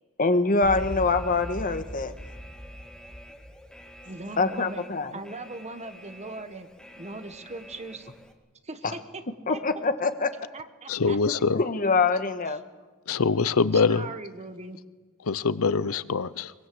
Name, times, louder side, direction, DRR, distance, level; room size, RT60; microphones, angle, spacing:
voice 1, 0.2-2.1 4.4-5.2 9.5-10.3 11.5-12.6, left 3 dB, 40° left, 9 dB, 1.5 m, -24 dB
Alarm, 0.6-8.3, equal, 5° left, 2.0 m, -42 dB
voice 2, 4.0-4.8 5.1-6.7 7.0-8.1 8.6-9.2 9.5-9.6 10.5-11.2 13.7-14.8, right 2 dB, 30° right, 9 dB, 1.5 m, -39 dB
voice 3, 10.9-11.6 13.1-14.0 15.3-16.5, left 4 dB, 85° left, 17 dB, 0.7 m, -24 dB
23.0 x 22.0 x 7.9 m, 1.3 s
head